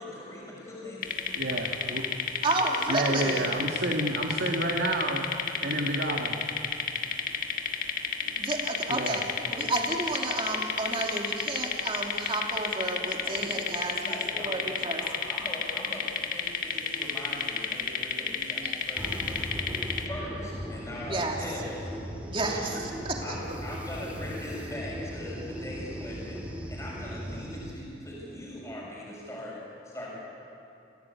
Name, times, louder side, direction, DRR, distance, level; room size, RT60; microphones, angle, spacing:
voice 1, 0.0-2.0 13.2-13.6 14.0-19.7 20.0-21.9 22.4-22.8 23.2-26.4 26.7-30.1, left 1 dB, 15° left, -5 dB, 6.4 m, -41 dB
sound 1, 1.0-20.1, left 7 dB, 50° left, 1.7 m, -31 dB
voice 2, 1.3-2.0 2.9-5.3 5.6-6.4 8.9-9.2, right 1 dB, 75° right, -1 dB, 2.1 m, -29 dB
voice 3, 2.4-3.5 8.4-9.2 9.5-15.0 21.1-21.4 22.2-23.4, right 2 dB, 30° right, 0 dB, 2.9 m, -31 dB
sound 2, 19.0-27.7, equal, 10° right, 2.4 m, -38 dB
28.0 x 16.5 x 8.4 m, 2.7 s
head